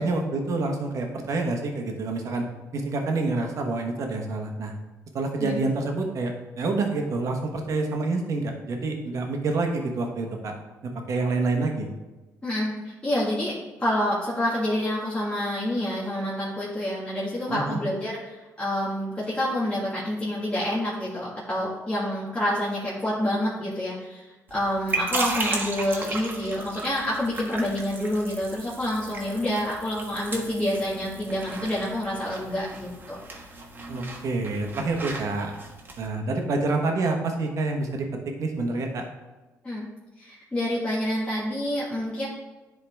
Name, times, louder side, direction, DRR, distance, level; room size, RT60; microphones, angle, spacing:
voice 1, 0.0-2.5 2.7-4.7 5.1-10.5 10.8-11.9 17.5-17.8 33.9-35.6 36.0-38.1 38.4-39.0, right 3 dB, 60° right, 3 dB, 1.3 m, -27 dB
voice 2, 12.4-24.3 24.5-33.2 39.6-39.9 40.2-42.3, left 1 dB, 20° left, -8 dB, 1.9 m, -28 dB
sound 1, 24.5-36.1, right 3 dB, 35° right, 1.3 m, -35 dB
10.0 x 3.9 x 3.5 m, 1.2 s
cardioid pair, 90°, 6 cm